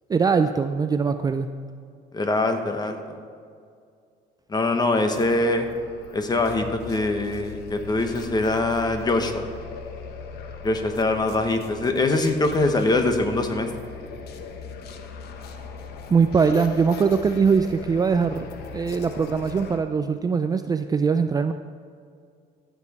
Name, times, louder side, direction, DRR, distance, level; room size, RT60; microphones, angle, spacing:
voice 1, 0.1-1.5 16.1-21.5, right 5 dB, 20° right, 8 dB, 0.4 m, -22 dB
voice 2, 2.1-3.0 4.5-5.7 6.1-9.5 10.6-13.7, left 2 dB, 25° left, 6 dB, 1.1 m, -23 dB
sound 1, 5.1-19.8, left 5 dB, 70° left, 1.0 m, -39 dB
14.0 x 7.2 x 4.2 m, 2.3 s
cardioid pair, 110°, 17 cm